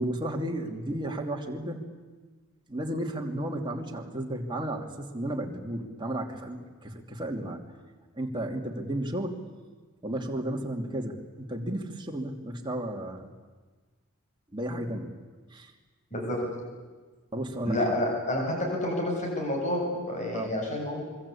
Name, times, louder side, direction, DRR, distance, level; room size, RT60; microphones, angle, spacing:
voice 1, 0.0-1.9 2.7-7.6 8.1-9.4 10.0-13.3 14.5-15.1 15.5-15.7 17.3-17.9 20.3-20.5, right 1 dB, 20° right, 1 dB, 2.7 m, -33 dB
voice 2, 16.1-16.5 17.6-21.0, left 1 dB, 35° left, 0 dB, 7.6 m, -29 dB
26.0 x 23.5 x 8.6 m, 1.4 s
head